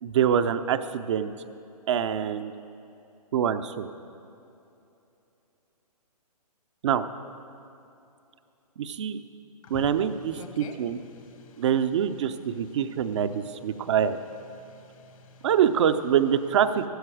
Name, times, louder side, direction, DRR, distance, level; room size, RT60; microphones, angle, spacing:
voice 1, 0.0-1.3 1.9-2.5 3.3-3.9 6.8-7.1 8.8-9.2 9.7-11.0 11.6-14.2 15.4-16.8, right 9 dB, 50° right, 9 dB, 0.6 m, -25 dB
voice 2, 9.6-11.6 12.3-14.0 14.5-15.5, left 5 dB, 55° left, 6 dB, 1.6 m, -47 dB
15.0 x 13.0 x 4.8 m, 2.8 s
hypercardioid pair, 135°, 20 cm